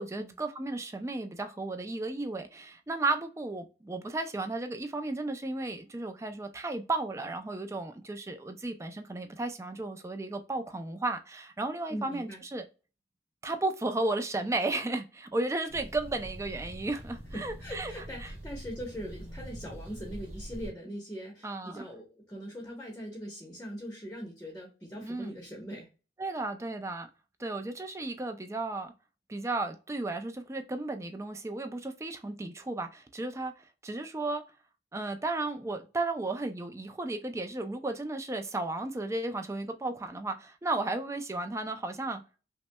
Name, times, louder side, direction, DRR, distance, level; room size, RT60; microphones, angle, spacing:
voice 1, 0.0-12.6 13.4-17.9 18.2-18.3 21.4-21.8 25.0-25.3 26.2-27.1 27.4-28.9 29.3-33.5 33.8-34.4 34.9-42.2, right 2 dB, 15° right, 0.4 m, -34 dB
voice 2, 11.9-12.4 17.3-25.9, equal, 10° left, 0.8 m, -41 dB
sound 1, 15.7-20.7, right 1 dB, 40° right, 2.0 m, -44 dB
5.6 x 2.1 x 2.2 m
head